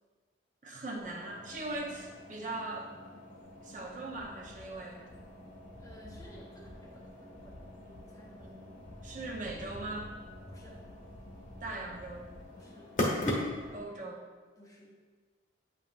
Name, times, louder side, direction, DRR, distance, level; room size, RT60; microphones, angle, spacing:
voice 1, 0.6-2.9 3.6-5.0 8.4-8.7 9.0-10.1 11.6-12.3 13.7-14.3, right 2 dB, 40° right, -1 dB, 0.8 m, -40 dB
sound 1, 1.0-13.8, left 1 dB, 40° left, 1.1 m, -41 dB
voice 2, 5.8-8.4 10.4-10.9 12.5-12.9 14.6-15.0, right 1 dB, 20° left, -2 dB, 0.8 m, -56 dB
8.4 x 5.6 x 2.5 m, 1.4 s
head